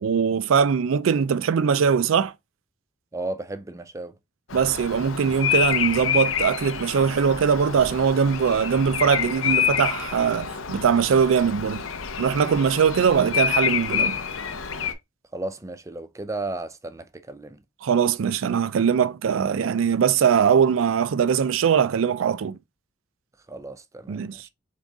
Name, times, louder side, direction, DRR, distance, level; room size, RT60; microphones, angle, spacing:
voice 1, 0.0-2.3 4.5-11.8 12.2-14.2 17.8-22.6 24.1-24.4, right 7 dB, 80° right, 0.4 m, -21 dB
voice 2, 3.1-4.1 15.3-17.6 23.5-24.5, right 2 dB, 15° right, 0.4 m, -34 dB
Bird vocalization bird call bird song, 4.5-14.9, left 8 dB, 85° left, 0.7 m, -28 dB
3.9 x 3.6 x 3.6 m
head